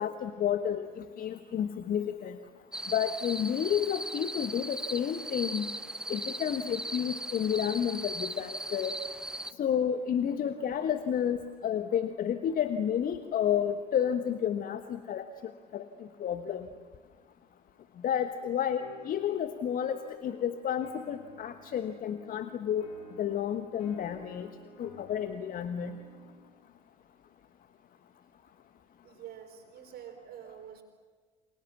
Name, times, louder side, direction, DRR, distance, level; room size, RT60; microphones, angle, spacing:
voice 1, 0.0-2.4 2.9-5.7 6.1-9.0 9.6-15.8 16.2-16.7 18.0-22.9 23.2-24.5 24.8-25.9, left 9 dB, 45° left, 10 dB, 1.3 m, -31 dB
sound 1, 2.7-9.5, right 1 dB, 5° right, 1.1 m, -38 dB
sound 2, 18.8-26.6, left 5 dB, 80° left, 3.5 m, -53 dB
voice 2, 29.0-30.8, right 9 dB, 50° right, 4 dB, 4.7 m, -47 dB
30.0 x 27.5 x 7.3 m, 1.5 s
figure-of-eight pair, 55°, 21 cm